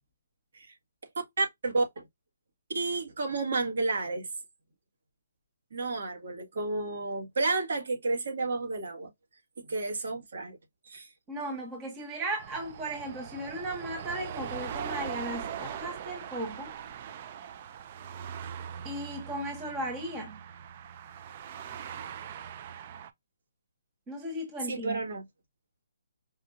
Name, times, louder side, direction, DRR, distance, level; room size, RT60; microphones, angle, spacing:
voice 1, 1.1-2.1 2.7-4.3 5.7-9.1 9.6-10.6 10.8-11.1 24.7-25.2, right 3 dB, 60° right, 1.6 m, -31 dB
voice 2, 11.3-16.7 18.8-20.4 24.1-25.0, right 1 dB, 15° right, 1.0 m, -36 dB
sound 1, 12.4-23.1, right 8 dB, 30° right, 0.4 m, -41 dB
4.8 x 2.6 x 2.4 m
hypercardioid pair, 170°, 0 cm